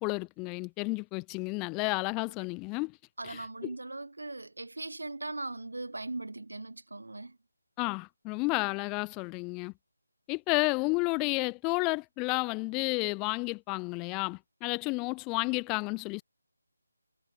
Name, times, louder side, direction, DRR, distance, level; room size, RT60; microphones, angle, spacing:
voice 1, 0.0-3.0 3.2-3.7 7.8-9.7 10.3-16.2, left 29 dB, 15° left, 0.4 m, -31 dB
voice 2, 3.2-7.4, right 2 dB, 80° right, 3.8 m, -39 dB
figure-of-eight pair, 160°, 0 cm